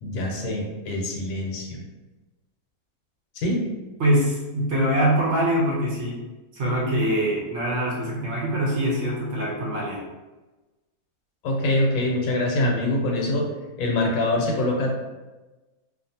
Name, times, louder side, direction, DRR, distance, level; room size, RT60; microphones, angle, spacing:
voice 1, 0.0-1.8 3.3-3.7 11.4-13.5 13.8-14.9, left 1 dB, 75° left, -1 dB, 1.0 m, -24 dB
voice 2, 4.0-6.2 6.5-10.0, equal, 60° right, -4 dB, 0.9 m, -23 dB
2.5 x 2.4 x 2.7 m, 1.2 s
omnidirectional pair, 1.5 m